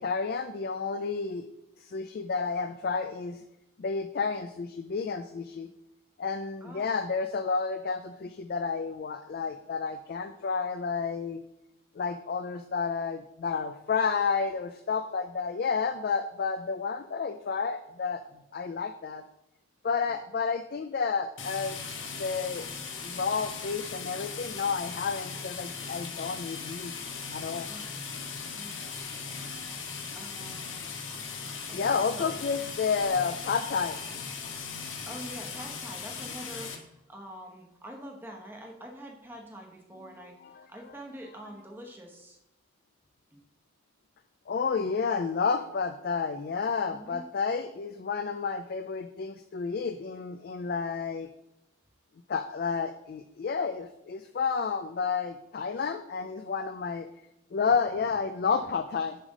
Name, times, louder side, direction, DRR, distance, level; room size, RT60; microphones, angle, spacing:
voice 1, 0.0-1.5 1.8-3.4 3.8-5.7 6.2-11.4 12.0-18.2 18.5-19.2 19.8-22.7 23.0-26.9 27.3-27.7 31.7-34.0 40.4-40.6 44.5-51.3 52.3-57.1 57.5-59.2, left 5 dB, 50° left, 9 dB, 0.3 m, -31 dB
voice 2, 6.6-7.0 27.6-28.1 28.5-29.0 30.1-30.9 31.7-32.4 35.0-42.4 43.3-43.4 46.9-47.2, equal, 10° right, 1 dB, 1.0 m, -45 dB
sound 1, 21.4-36.8, left 5 dB, 85° left, 1.1 m, -38 dB
7.2 x 3.4 x 6.3 m, 0.87 s
head